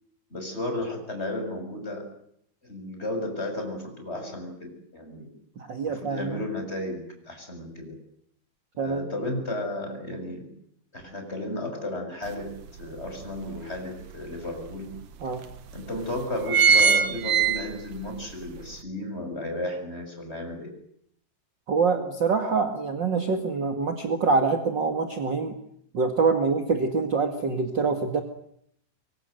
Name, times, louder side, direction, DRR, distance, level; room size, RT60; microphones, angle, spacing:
voice 1, 0.3-2.1 2.6-5.3 5.9-8.0 8.8-10.5 10.9-12.5 12.8-14.9 15.7-20.7, left 1 dB, 15° left, 4 dB, 7.0 m, -33 dB
voice 2, 5.5-6.4 8.8-9.1 15.2-15.4 21.7-25.6 25.9-28.2, right 4 dB, 45° right, 5 dB, 1.5 m, -25 dB
sound 1, 12.3-12.4 12.8-14.0 14.6-14.7 15.0-15.1 15.8-16.0 16.2-18.1 18.5-18.6, right 6 dB, 70° right, 1.6 m, -21 dB
25.5 x 24.0 x 8.0 m, 0.70 s
omnidirectional pair, 5.2 m